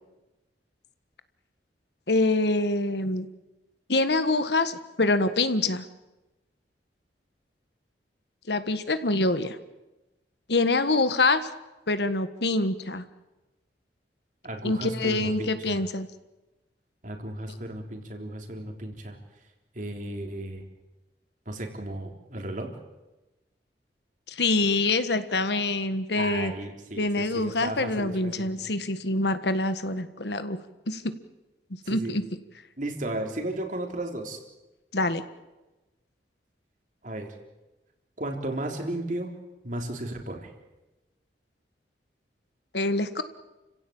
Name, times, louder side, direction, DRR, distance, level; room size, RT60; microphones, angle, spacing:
voice 1, 2.1-3.3 3.9-5.8 8.5-9.6 10.5-11.4 11.9-13.0 14.6-16.1 17.5-17.6 24.3-26.5 27.0-30.6 30.9-31.0 31.9-32.2 34.9-35.2 42.7-43.2, left 2 dB, 70° left, 11 dB, 1.5 m, -25 dB
voice 2, 14.4-15.8 17.0-19.2 19.7-20.6 21.5-22.7 26.2-28.7 31.8-32.2 32.8-34.4 37.0-37.3 38.2-39.3 39.6-40.5, right 1 dB, 45° right, 3 dB, 3.7 m, -34 dB
30.0 x 16.5 x 8.8 m, 1.1 s
head